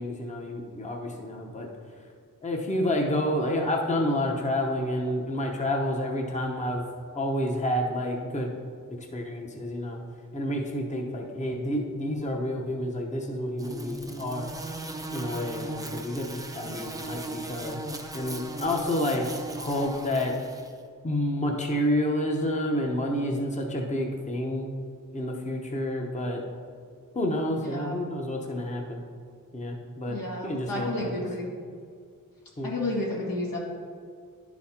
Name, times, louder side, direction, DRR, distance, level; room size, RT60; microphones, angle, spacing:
voice 1, 0.0-1.7 2.4-6.9 7.1-8.5 9.1-10.0 10.3-14.5 15.1-17.8 18.1-19.3 19.5-20.4 21.0-24.7 25.1-26.4 27.1-29.0 29.5-31.1 32.6-32.8, left 1 dB, 20° left, 1 dB, 0.8 m, -29 dB
sound 1, 13.6-20.7, right 2 dB, 10° right, 0.5 m, -37 dB
voice 2, 27.6-27.9 30.1-31.5 32.6-33.6, left 1 dB, 90° left, -4 dB, 1.9 m, -31 dB
10.5 x 4.1 x 4.3 m, 2.2 s
wide cardioid pair, 120°, 33 cm